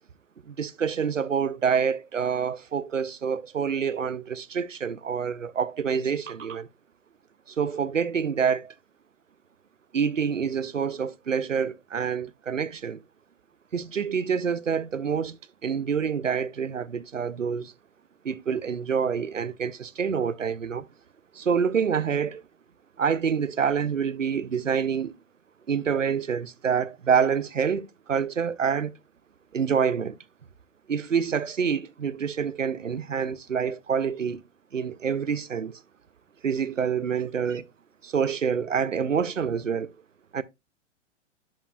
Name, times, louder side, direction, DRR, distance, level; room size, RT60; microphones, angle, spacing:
voice 1, 0.5-6.7 7.5-8.7 9.9-13.0 13.7-17.7 18.2-20.9 21.3-22.4 23.0-25.2 25.7-28.9 29.5-30.2 30.9-34.4 34.7-35.8 36.4-37.7 38.0-39.9 40.3-40.4, right 6 dB, 90° right, 0.5 m, -27 dB
11.5 x 5.1 x 2.2 m
figure-of-eight pair, 105°, 37 cm